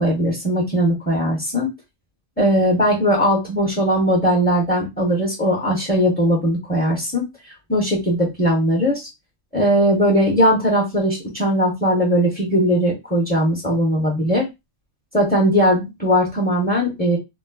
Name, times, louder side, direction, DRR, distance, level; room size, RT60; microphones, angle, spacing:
voice 1, 0.0-1.7 2.4-7.2 7.7-9.1 9.5-14.5 15.1-17.2, equal, 10° left, -3 dB, 0.6 m, -19 dB
3.9 x 2.1 x 2.2 m, 0.21 s
omnidirectional pair, 1.3 m